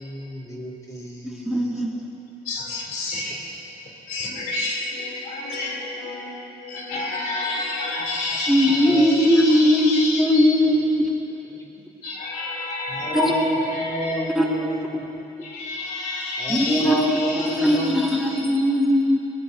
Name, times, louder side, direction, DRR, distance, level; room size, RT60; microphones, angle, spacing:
voice 1, 0.0-1.6 8.8-9.2 10.6-10.7 11.5-11.7 12.9-15.3 16.4-18.0, equal, 20° left, -3 dB, 2.6 m, -30 dB
voice 2, 1.2-1.9 8.5-11.2 13.2-13.3 14.4-14.5 16.5-17.1 17.5-19.2, equal, ahead, -3 dB, 2.0 m, -19 dB
voice 3, 2.4-10.6 11.8-14.3 15.4-18.5, left 2 dB, 90° left, -2 dB, 3.1 m, -30 dB
21.5 x 19.5 x 2.7 m, 2.9 s
cardioid pair, 115°, 16 cm